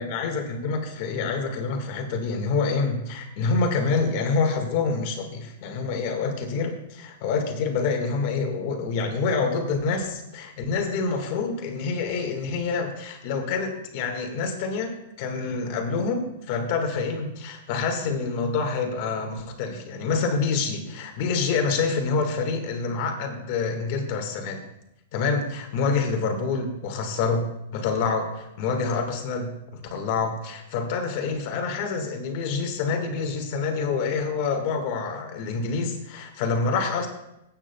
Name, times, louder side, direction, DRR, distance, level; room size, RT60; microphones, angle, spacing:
voice 1, 0.0-24.6 25.1-27.5 27.7-37.1, left 4 dB, 40° left, 4 dB, 1.7 m, -27 dB
21.0 x 8.7 x 2.3 m, 0.87 s
supercardioid pair, 175°, 0 cm